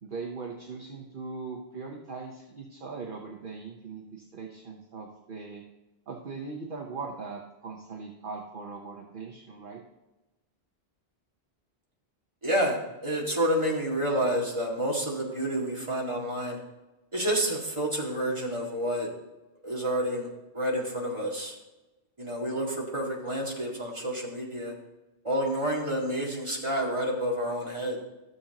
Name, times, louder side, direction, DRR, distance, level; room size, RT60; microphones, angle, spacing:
voice 1, 0.0-5.6 6.1-9.8, right 4 dB, 50° right, 1 dB, 1.1 m, -40 dB
voice 2, 12.4-16.6 17.1-19.1 19.6-20.3 20.5-21.5 22.2-24.7 25.2-28.0, right 1 dB, 25° right, -3 dB, 2.1 m, -29 dB
13.5 x 7.2 x 2.9 m, 1.0 s
omnidirectional pair, 1.1 m